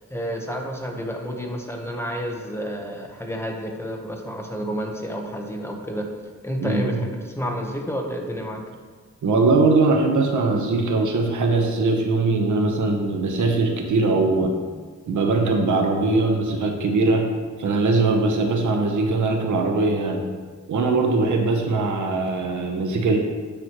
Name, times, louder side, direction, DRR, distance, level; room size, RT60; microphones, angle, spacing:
voice 1, 0.1-6.1 6.4-8.6, equal, 10° left, 1 dB, 0.9 m, -30 dB
voice 2, 6.6-7.0 9.2-14.5 15.1-17.3 17.6-20.2 20.7-23.2, right 3 dB, 90° right, 4 dB, 0.9 m, -21 dB
8.8 x 6.0 x 3.0 m, 1.5 s
wide cardioid pair, 115°, 29 cm